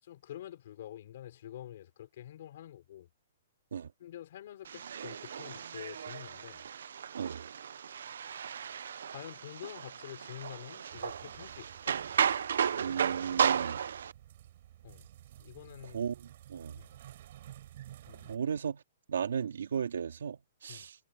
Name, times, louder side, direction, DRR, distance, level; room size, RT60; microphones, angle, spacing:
voice 1, 0.0-3.1 4.0-6.6 9.1-12.0 14.8-15.1 15.4-16.0 16.8-16.9 18.1-18.4 20.7-20.9, left 12 dB, 45° left, 5.1 m, -47 dB
sound 1, 4.6-14.1, right 7 dB, 70° right, 0.8 m, -34 dB
sound 2, 10.9-18.4, right 12 dB, 45° right, 5.2 m, -53 dB
voice 2, 12.8-13.8 15.9-16.1 16.5-16.8 18.3-18.8 19.1-20.9, right 7 dB, 85° right, 3.3 m, -35 dB
hypercardioid pair, 175°, 0 cm